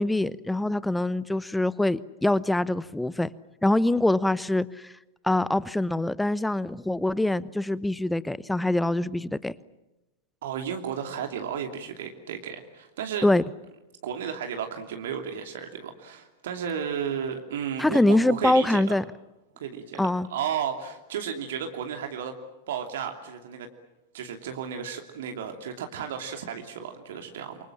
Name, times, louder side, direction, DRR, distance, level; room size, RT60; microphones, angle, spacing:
voice 1, 0.0-3.3 3.6-4.9 5.2-9.5 13.2-13.4 17.8-19.0 20.0-20.3, left 1 dB, 5° left, 1.0 m, -24 dB
voice 2, 10.4-13.3 14.0-18.9 19.6-20.0 20.3-22.3 22.7-23.7 24.1-27.6, right 8 dB, 60° right, 2.8 m, -33 dB
28.5 x 25.5 x 7.4 m
figure-of-eight pair, 90°, 0 cm